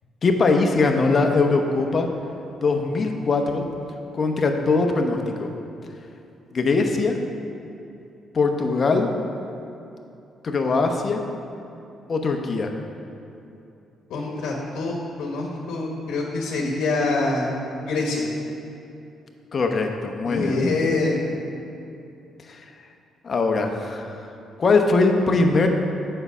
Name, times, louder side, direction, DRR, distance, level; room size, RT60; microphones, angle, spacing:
voice 1, 0.2-2.1 2.6-3.6 4.1-5.5 6.5-7.2 8.3-9.1 10.4-11.2 12.1-12.7 19.5-20.6 22.5-22.6 23.2-24.2 24.6-25.7, left 3 dB, 45° left, 4 dB, 0.9 m, -21 dB
voice 2, 14.1-17.5 17.8-18.2 20.2-21.2, left 3 dB, 80° left, -1 dB, 1.2 m, -25 dB
7.9 x 5.6 x 6.0 m, 2.8 s
cardioid pair, 90°, 0 cm